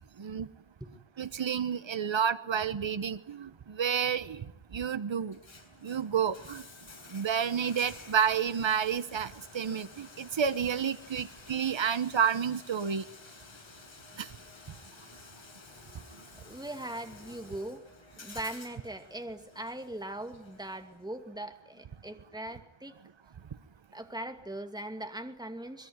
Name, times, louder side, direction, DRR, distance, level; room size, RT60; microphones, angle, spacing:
voice 1, 1.2-4.4 4.7-5.4 5.8-6.6 7.1-13.0 14.2-14.3, right 7 dB, 75° right, 12 dB, 1.1 m, -30 dB
Bathtub (filling or washing), 5.2-21.2, left 3 dB, 80° left, 6.7 m, -52 dB
voice 2, 16.4-17.8 18.2-23.0 23.9-25.9, right 1 dB, 10° right, 6 dB, 2.5 m, -40 dB
24.0 x 22.5 x 9.7 m, 0.76 s
wide cardioid pair, 80°, 46 cm